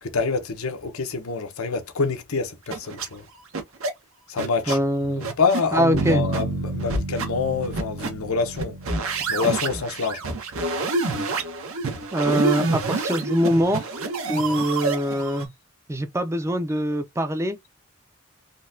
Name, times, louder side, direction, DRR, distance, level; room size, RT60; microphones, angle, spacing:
voice 1, 0.0-3.2 4.3-8.8 9.3-10.2, left 5 dB, 85° left, 0.8 m, -26 dB
sound 1, 2.7-3.1 3.5-3.9 4.4-4.7 5.2-5.6 6.0-6.4 6.8-7.3 7.6-8.1 8.5-15.4, right 3 dB, 80° right, 0.9 m, -27 dB
voice 2, 4.7-5.2 5.7-6.3 12.1-13.8 14.3-15.5 15.9-17.6, equal, 15° right, 0.4 m, -23 dB
Bass guitar, 5.9-10.0, right 3 dB, 55° right, 0.7 m, -31 dB
3.8 x 2.2 x 2.6 m
head